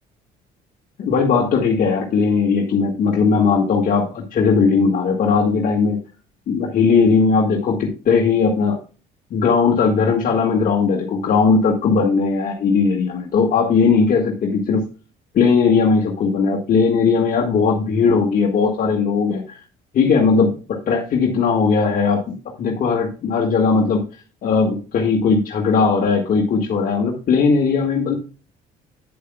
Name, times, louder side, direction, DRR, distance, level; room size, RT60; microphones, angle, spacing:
voice 1, 1.0-6.0 6.5-8.8 9.3-14.8 15.3-19.6 19.9-24.0 24.4-28.1, left 5 dB, 55° left, -1 dB, 1.9 m, -18 dB
9.4 x 8.4 x 2.3 m, 0.35 s
cardioid pair, 110°, 17 cm